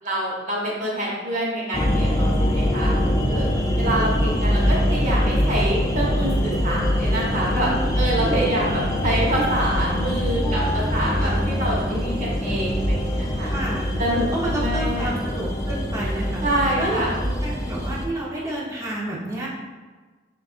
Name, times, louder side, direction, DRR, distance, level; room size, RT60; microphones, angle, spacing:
voice 1, 0.0-2.9 3.3-3.5 3.8-13.5 14.0-15.1 16.4-17.1, right 1 dB, 40° right, -4 dB, 1.0 m, -26 dB
sound 1, 1.7-18.1, equal, 15° left, 0.3 m, -23 dB
voice 2, 7.5-8.7 10.4-11.5 13.4-13.9 14.3-16.4 16.8-19.5, right 1 dB, 15° right, -5 dB, 0.8 m, -30 dB
6.4 x 2.3 x 2.4 m, 1.3 s
head